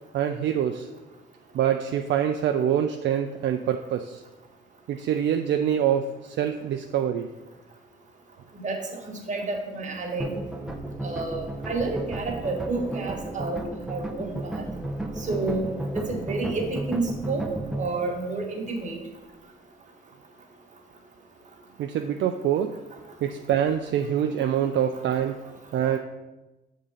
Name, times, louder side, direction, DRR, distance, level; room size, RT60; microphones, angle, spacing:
voice 1, 0.1-0.9 1.5-4.2 4.9-7.3 21.8-22.7 23.2-25.4 25.7-26.0, right 9 dB, 65° right, 5 dB, 0.4 m, -25 dB
voice 2, 8.5-10.3 11.0-13.6 13.9-14.6 15.2-15.7 15.9-17.4 17.8-19.0, right 3 dB, 40° right, 1 dB, 1.5 m, -30 dB
sound 1, 10.2-17.9, right 1 dB, 5° right, 0.7 m, -33 dB
6.8 x 3.7 x 5.4 m, 1.1 s
cardioid pair, 90°, 20 cm